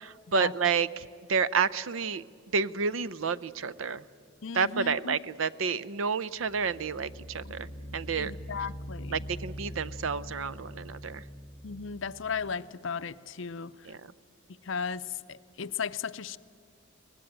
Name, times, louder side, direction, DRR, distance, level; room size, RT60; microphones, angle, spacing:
voice 1, 0.0-2.2 2.5-4.0 4.5-7.7 7.9-8.3 8.6-8.7 9.1-11.2 13.9-14.0, right 5 dB, 75° right, 18 dB, 0.6 m, -30 dB
sound 1, 4.0-4.3 6.4-12.5, equal, 25° left, 6.3 m, -43 dB
voice 2, 4.4-5.2 7.4-7.6 8.2-9.3 11.6-13.7 14.6-16.4, left 6 dB, 65° left, 12 dB, 0.6 m, -35 dB
23.0 x 19.0 x 8.9 m, 2.3 s
head